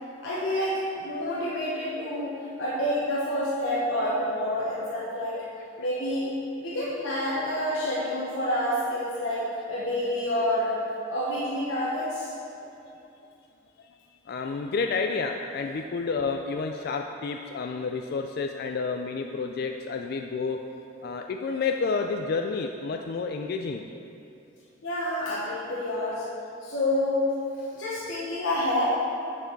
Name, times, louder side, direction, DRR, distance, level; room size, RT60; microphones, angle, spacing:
voice 1, 0.2-2.3 2.6-5.4 5.8-6.3 6.6-10.8 11.1-12.3 24.8-26.2 26.6-27.3 27.7-28.8, left 1 dB, 75° left, -8 dB, 1.3 m, -28 dB
voice 2, 14.3-20.6 21.0-23.8, left 4 dB, 50° left, 4 dB, 0.3 m, -30 dB
7.5 x 6.8 x 4.5 m, 2.7 s
head